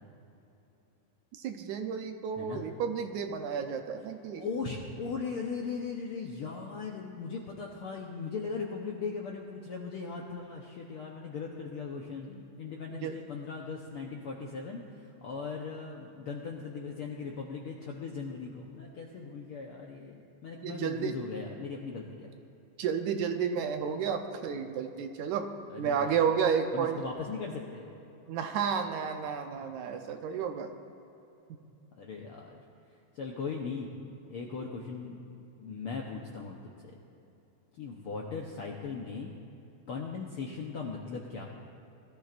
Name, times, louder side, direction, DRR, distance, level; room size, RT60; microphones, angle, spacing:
voice 1, 1.3-4.4 12.9-13.1 20.6-21.2 22.8-25.5 25.8-27.0 28.3-30.7, right 7 dB, 75° right, 6 dB, 2.0 m, -31 dB
voice 2, 4.3-22.3 25.7-26.2 26.7-27.9 32.0-32.5 33.1-33.9 34.3-35.2 35.6-36.7 37.7-39.3 39.9-41.5, left 5 dB, 70° left, -1 dB, 1.3 m, -38 dB
21.5 x 14.0 x 2.5 m, 2.9 s
omnidirectional pair, 3.6 m